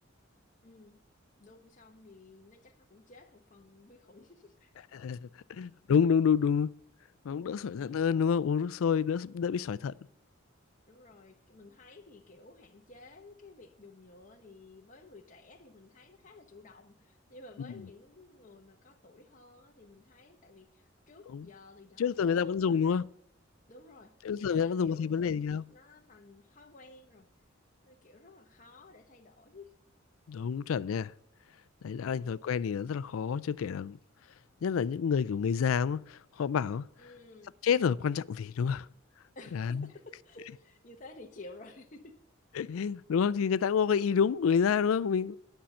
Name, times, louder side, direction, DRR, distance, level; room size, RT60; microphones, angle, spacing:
voice 1, 0.6-1.0 1.4-4.7 10.1-10.2 10.9-23.1 23.7-24.2 24.5-25.4 25.6-27.3 27.8-29.7 37.0-37.6 39.3-42.1, left 2 dB, 40° left, 0.9 m, -54 dB
voice 2, 4.9-6.7 7.2-9.9 17.6-17.7 21.3-21.5 22.0-23.1 24.2-25.7 30.3-31.1 31.8-34.0 34.6-36.9 37.6-38.9 39.5-39.9 42.6-45.4, left 7 dB, 90° left, 0.4 m, -28 dB
10.5 x 5.6 x 8.5 m
head